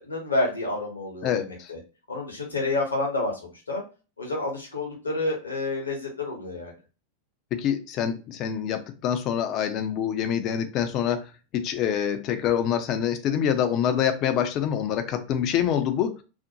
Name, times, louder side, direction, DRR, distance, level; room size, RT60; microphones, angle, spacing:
voice 1, 0.0-1.4 1.7-1.8 2.1-3.8 4.2-6.7, left 2 dB, 75° left, 0 dB, 0.7 m, -29 dB
voice 2, 1.2-1.7 7.5-16.2, left 9 dB, 35° left, 9 dB, 0.4 m, -26 dB
2.4 x 2.1 x 2.6 m, 0.33 s
figure-of-eight pair, 90°, 0 cm